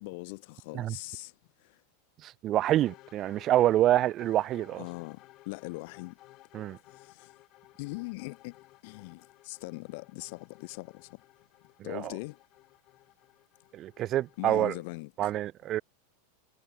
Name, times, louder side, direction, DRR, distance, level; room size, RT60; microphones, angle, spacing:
voice 1, 0.0-1.3 1.6-1.8 4.8-6.2 6.9-7.3 7.8-8.6 8.8-11.2 11.8-12.4 14.4-15.3, left 27 dB, 55° left, 2.6 m, -41 dB
voice 2, 2.2-4.8 6.5-6.8 11.9-12.1 13.7-14.7 15.2-15.8, right 13 dB, 30° right, 0.3 m, -27 dB
sound 1, 2.8-14.9, left 18 dB, 40° left, 2.7 m, -57 dB
supercardioid pair, 145°, 0 cm